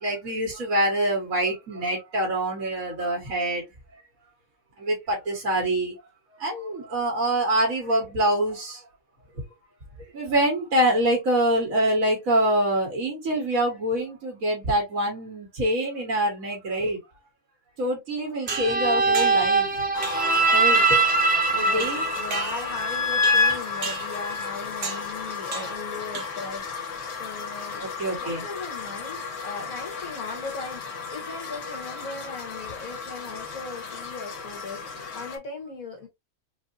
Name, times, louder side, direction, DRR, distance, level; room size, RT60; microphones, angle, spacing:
voice 1, 0.0-3.6 3.9-4.0 4.8-6.0 6.4-8.8 10.1-17.0 17.8-19.8 20.5-21.0 21.5-22.1 27.8-28.4, right 1 dB, 80° right, 1.9 m, -25 dB
sound 1, 18.5-24.5, right 2 dB, 10° right, 0.6 m, -23 dB
sound 2, 18.5-19.6 20.0-20.4 20.7-21.1 21.8-22.9 23.2-23.5 23.8-24.2 24.8-25.1 25.5-25.9 26.1-26.6, right 5 dB, 55° right, 1.1 m, -35 dB
sound 3, 19.9-35.4, left 5 dB, 65° left, 1.3 m, -35 dB
voice 2, 21.5-27.9 28.2-36.1, left 4 dB, 90° left, 1.9 m, -38 dB
4.5 x 2.8 x 2.6 m
omnidirectional pair, 1.4 m